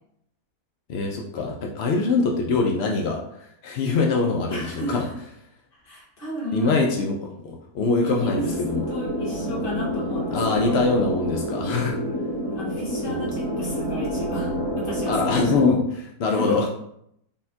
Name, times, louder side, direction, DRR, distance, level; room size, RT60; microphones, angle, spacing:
voice 1, 0.9-5.0 6.5-8.8 10.3-12.0 13.2-13.3 15.1-16.7, left 4 dB, 85° left, 0 dB, 0.5 m, -23 dB
voice 2, 4.5-5.1 5.7-6.9 8.0-8.5 8.9-11.1 12.1-15.6 16.2-16.6, left 1 dB, 35° left, -4 dB, 1.3 m, -34 dB
sound 1, 8.1-15.7, equal, 45° right, 1.3 m, -28 dB
4.1 x 3.6 x 2.7 m, 0.74 s
omnidirectional pair, 1.7 m